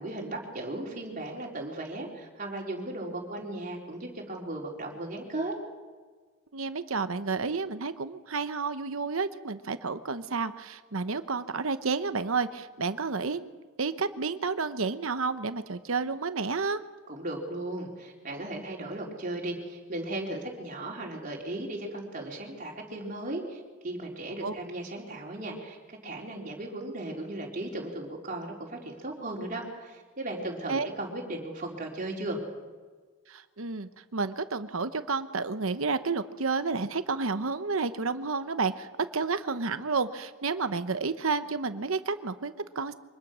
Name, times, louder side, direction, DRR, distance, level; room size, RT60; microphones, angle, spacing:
voice 1, 0.0-5.5 17.1-32.4, right 1 dB, 40° right, -1 dB, 4.2 m, -36 dB
voice 2, 6.5-13.5 13.8-16.8 24.4-24.6 30.7-30.9 33.3-38.9 39.1-42.9, right 4 dB, 75° right, 11 dB, 1.0 m, -30 dB
25.0 x 20.0 x 6.3 m, 1.4 s
head